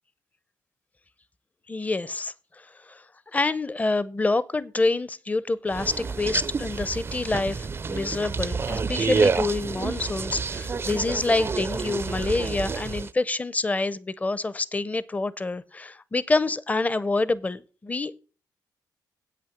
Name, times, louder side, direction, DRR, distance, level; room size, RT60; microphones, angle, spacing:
voice 1, 1.7-3.0 3.3-18.1, left 3 dB, 20° left, 0.6 m, -27 dB
sound 1, 5.7-13.1, right 5 dB, 35° right, 0.4 m, -29 dB
8.2 x 5.9 x 7.2 m
cardioid pair, 90°, 7 cm